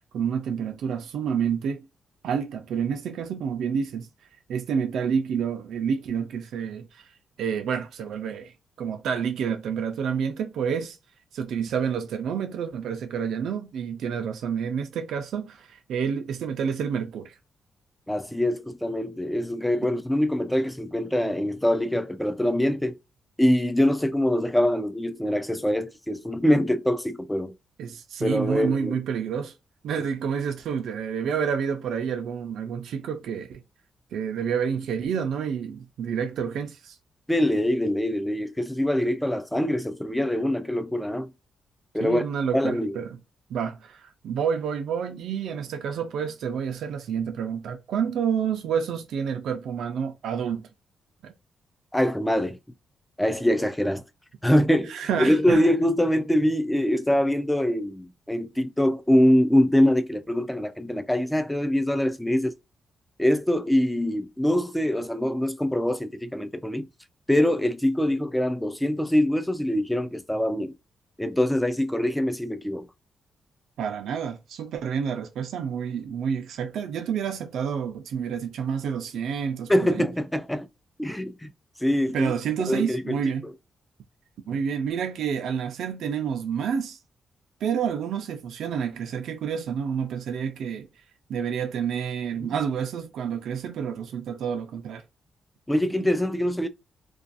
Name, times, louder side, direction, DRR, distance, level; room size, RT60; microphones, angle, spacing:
voice 1, 0.1-1.9 2.2-4.1 4.5-7.0 7.4-11.0 11.3-17.3 27.8-29.5 29.8-33.6 34.1-37.0 42.0-43.2 43.5-50.7 51.2-51.3 54.9-55.6 73.8-80.1 82.1-83.4 84.5-87.0 87.6-90.9 91.3-95.0, right 7 dB, 85° right, 0.4 m, -29 dB
voice 2, 18.1-23.0 23.4-27.5 28.2-29.0 30.0-30.1 37.3-41.3 41.9-42.3 42.5-43.0 51.9-52.6 53.2-54.0 54.4-62.5 63.2-66.9 67.3-70.7 71.2-72.8 79.7-80.7 81.0-81.5 81.8-82.3 82.7-83.2 92.4-92.5 95.7-96.7, left 1 dB, 5° left, 0.3 m, -24 dB
2.5 x 2.3 x 2.5 m
wide cardioid pair, 155°, 0 cm